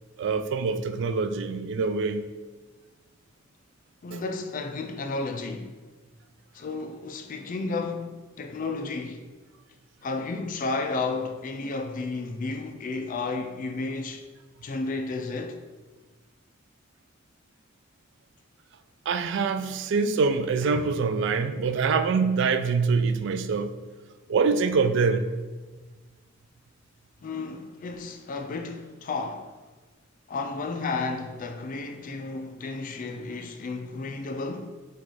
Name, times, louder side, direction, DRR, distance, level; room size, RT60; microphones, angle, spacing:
voice 1, 0.2-2.3 19.1-23.7 24.3-25.3, right 4 dB, 65° right, 0.3 m, -25 dB
voice 2, 4.0-5.8 6.5-9.3 10.0-14.3 14.6-15.6 27.2-29.6 30.3-34.8, left 3 dB, 45° left, 0.4 m, -32 dB
4.6 x 2.4 x 4.0 m
head